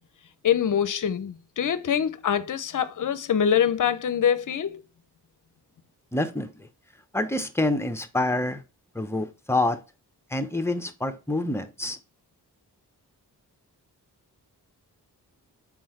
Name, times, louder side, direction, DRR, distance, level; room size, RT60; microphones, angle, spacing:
voice 1, 0.4-4.8, left 8 dB, 50° left, 0.7 m, -24 dB
voice 2, 6.1-6.7 7.1-8.6 8.9-9.8 10.3-12.0, left 2 dB, 5° left, 0.8 m, -27 dB
4.5 x 3.8 x 3.1 m
cardioid pair, 50°, 41 cm